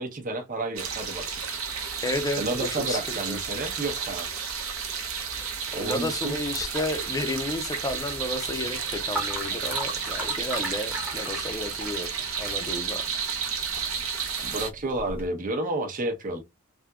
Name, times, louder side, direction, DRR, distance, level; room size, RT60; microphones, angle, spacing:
voice 1, 0.0-1.4 2.4-4.3 5.7-6.4 14.4-16.4, right 2 dB, 40° right, 0.8 m, -31 dB
sound 1, 0.8-14.7, right 6 dB, 70° right, 0.8 m, -32 dB
voice 2, 2.0-2.4 2.7-3.4 5.8-12.1 12.4-13.0, left 2 dB, 15° left, 0.5 m, -32 dB
sound 2, 6.6-15.3, right 1 dB, 10° right, 0.9 m, -39 dB
3.5 x 2.8 x 2.3 m
head